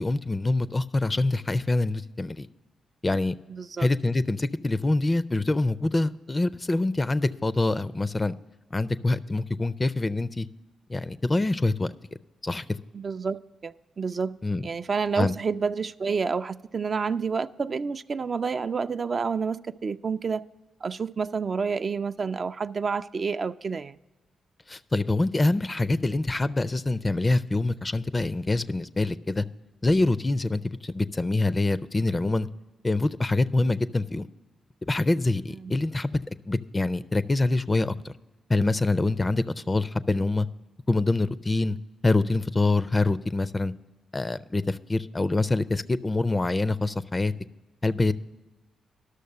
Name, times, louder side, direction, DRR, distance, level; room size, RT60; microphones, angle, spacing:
voice 1, 0.0-2.5 3.0-3.4 3.8-8.3 8.7-10.5 10.9-11.9 12.4-12.8 14.4-14.7 15.1-15.3 24.7-29.4 29.8-32.5 32.8-34.3 34.9-36.2 36.5-38.1 38.5-40.5 40.9-41.8 42.0-43.7 44.1-47.3 47.8-48.1, left 2 dB, 30° left, 0.4 m, -25 dB
voice 2, 3.5-3.9 12.9-14.4 14.6-20.4 20.8-24.0 35.6-35.7, right 5 dB, 45° right, 0.3 m, -29 dB
11.5 x 6.5 x 6.4 m
hypercardioid pair, 40°, 0 cm